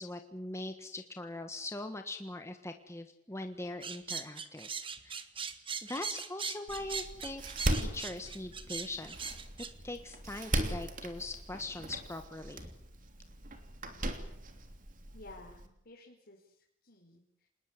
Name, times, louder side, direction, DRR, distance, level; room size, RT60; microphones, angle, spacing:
voice 1, 0.0-4.7 5.0-5.2 5.8-7.4 7.7-9.3 9.8-12.7, left 2 dB, 15° left, 6 dB, 1.5 m, -41 dB
sound 1, 3.8-9.7, right 6 dB, 30° right, 1.7 m, -40 dB
Door, 6.7-15.7, right 1 dB, 45° right, 3.1 m, -38 dB
voice 2, 15.1-17.5, left 2 dB, 55° left, -1 dB, 4.7 m, -54 dB
27.0 x 20.5 x 8.3 m, 0.71 s
head